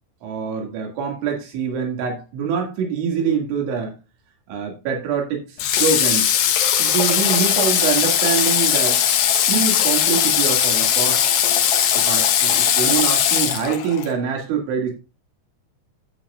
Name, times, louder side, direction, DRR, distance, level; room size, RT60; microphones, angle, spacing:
voice 1, 0.2-3.9 4.5-6.3 6.8-9.0 9.5-11.2 11.9-14.9, right 6 dB, 70° right, 2 dB, 4.5 m, -24 dB
Water / Water tap faucet, 5.6-14.1, left 9 dB, 70° left, 2.3 m, -19 dB
13.0 x 7.8 x 2.4 m, 0.29 s
omnidirectional pair, 5.7 m